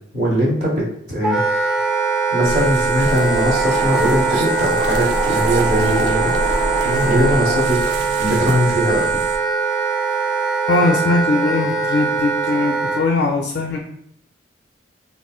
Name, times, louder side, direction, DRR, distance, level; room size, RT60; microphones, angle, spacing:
voice 1, 0.1-1.4 2.3-6.3 7.0-7.8 8.2-9.0, equal, 40° right, -5 dB, 0.7 m, -20 dB
Wind instrument woodwind instrument, 1.2-13.0, right 4 dB, 5° right, 0.5 m, -21 dB
sound 1, 2.4-9.4, right 1 dB, 65° right, 0.4 m, -27 dB
Wind, 3.0-7.6, right 2 dB, 80° right, 1.2 m, -26 dB
voice 2, 10.7-13.8, left 3 dB, 60° left, 2 dB, 0.3 m, -20 dB
3.7 x 2.1 x 2.3 m, 0.74 s
head